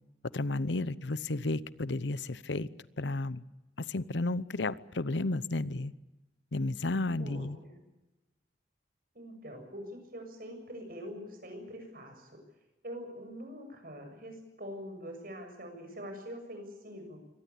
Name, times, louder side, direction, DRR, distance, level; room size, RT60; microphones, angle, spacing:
voice 1, 0.3-2.7 3.0-3.4 3.9-5.9 6.5-7.6, left 2 dB, 80° left, 0.8 m, -32 dB
voice 2, 7.2-7.8 9.1-12.4 12.8-17.2, equal, 55° right, 7.2 m, -44 dB
24.5 x 18.5 x 8.6 m
head